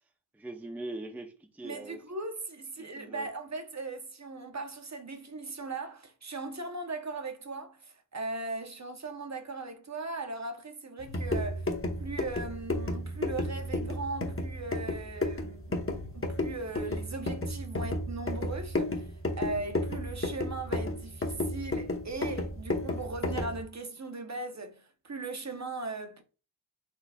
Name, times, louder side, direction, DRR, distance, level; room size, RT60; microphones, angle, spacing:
voice 1, 0.3-2.0 2.8-3.3, right 2 dB, 5° right, 0.6 m, -41 dB
voice 2, 1.6-11.7 12.0-26.2, right 3 dB, 35° right, 0.8 m, -39 dB
sound 1, 11.0-23.6, left 2 dB, 30° left, 1.0 m, -33 dB
4.4 x 4.0 x 2.3 m
wide cardioid pair, 70°, 46 cm